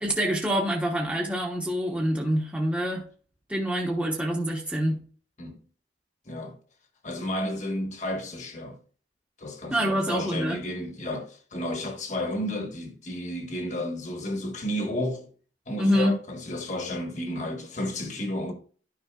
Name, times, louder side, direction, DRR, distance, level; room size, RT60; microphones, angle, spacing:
voice 1, 0.0-3.0 3.5-5.0 9.7-10.6 15.8-16.1, equal, 5° right, 1.0 m, -26 dB
voice 2, 6.3-6.6 7.0-8.8 9.4-15.2 15.7-18.5, left 1 dB, 40° left, 1.4 m, -32 dB
12.0 x 5.3 x 2.4 m
head